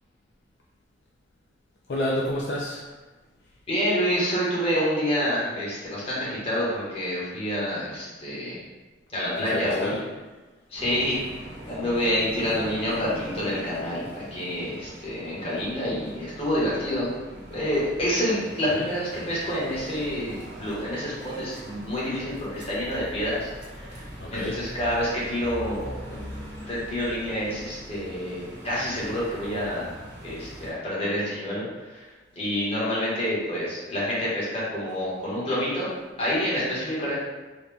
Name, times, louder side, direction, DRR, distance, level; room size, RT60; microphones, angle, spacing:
voice 1, 1.9-3.0 9.4-10.1 18.7-18.9 24.2-24.6, left 1 dB, 65° left, -4 dB, 0.5 m, -30 dB
voice 2, 3.7-8.6 9.1-10.0 10.7-11.2 11.7-17.1 17.5-23.5 23.8-24.0 24.3-26.2 26.7-29.9 30.2-31.6 31.9-32.0 32.3-35.9 36.2-37.1, equal, 35° left, -8 dB, 1.3 m, -28 dB
sound 1, 10.7-30.7, equal, 65° right, 1.1 m, -41 dB
4.0 x 2.3 x 3.4 m, 1.2 s
head